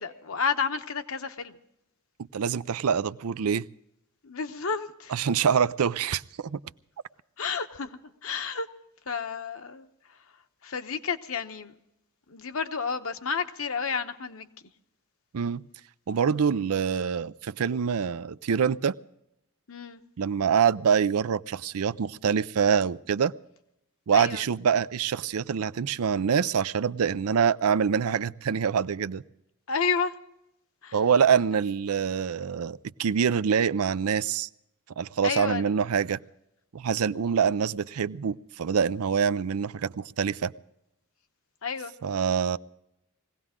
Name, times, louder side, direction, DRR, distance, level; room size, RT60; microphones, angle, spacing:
voice 1, 0.0-1.6 4.2-5.1 7.4-8.7 9.1-9.9 10.6-11.7 12.3-14.5 19.7-20.0 24.1-24.4 29.7-30.1 30.8-31.0 35.2-35.6 41.6-41.9, left 5 dB, 65° left, 0.9 m, -31 dB
voice 2, 2.3-3.7 5.1-6.6 15.3-15.6 16.1-19.0 20.2-23.3 24.1-29.2 30.9-34.5 35.0-36.2 36.7-40.5 42.0-42.6, right 7 dB, 75° right, 0.5 m, -25 dB
21.5 x 17.0 x 3.7 m
head